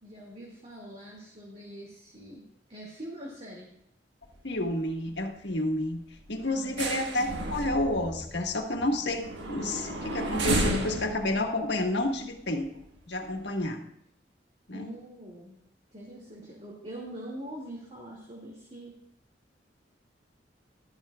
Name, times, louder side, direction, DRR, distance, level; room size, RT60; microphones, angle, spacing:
voice 1, 0.0-3.7 6.5-6.9 14.7-15.6 15.9-19.0, right 1 dB, 35° right, -3 dB, 2.3 m, -43 dB
sound 1, 4.2-4.7 5.0-5.2 5.6-5.8 6.1-12.8 13.3-13.4, right 2 dB, 85° right, 1.5 m, -33 dB
voice 2, 4.4-6.0 6.3-12.7 13.1-13.8 14.7-14.9, left 1 dB, 75° left, 3 dB, 1.7 m, -30 dB
14.0 x 12.5 x 2.4 m, 0.77 s
head